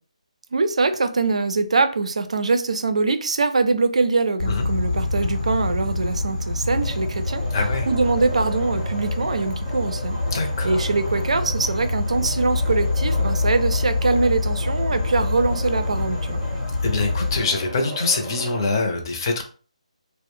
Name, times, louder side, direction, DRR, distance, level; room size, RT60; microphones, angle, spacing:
voice 1, 0.5-7.4 7.9-10.2 10.6-16.4, right 3 dB, 60° right, 10 dB, 0.4 m, -23 dB
Insect, 4.4-17.4, left 3 dB, 85° left, 0.9 m, -25 dB
sound 1, 6.8-18.8, equal, 5° right, 0.6 m, -37 dB
voice 2, 7.5-7.9 10.3-10.8 16.8-19.4, left 3 dB, 35° left, 4 dB, 0.6 m, -24 dB
2.4 x 2.0 x 3.5 m, 0.39 s
figure-of-eight pair, 150°, 4 cm